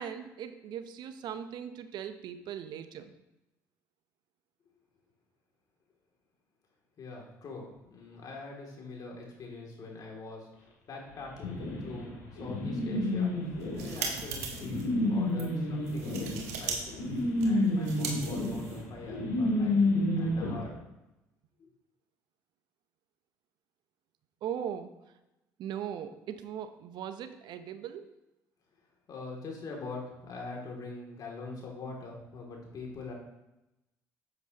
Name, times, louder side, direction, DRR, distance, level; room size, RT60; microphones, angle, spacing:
voice 1, 0.0-3.1 24.4-24.9 25.6-28.1, right 9 dB, 65° right, 10 dB, 0.7 m, -39 dB
voice 2, 7.0-13.3 13.7-17.0 17.4-19.7 20.2-20.8 21.6-21.7 29.1-33.1, left 3 dB, 50° left, -1 dB, 2.5 m, -43 dB
sound 1, 11.4-20.5, left 1 dB, 80° left, 2.6 m, -30 dB
sound 2, 13.5-14.8 15.3-15.5 15.9-16.8 17.0-19.0, right 6 dB, 85° right, 1.2 m, -38 dB
7.9 x 7.9 x 2.9 m, 0.95 s
hypercardioid pair, 60°, 8 cm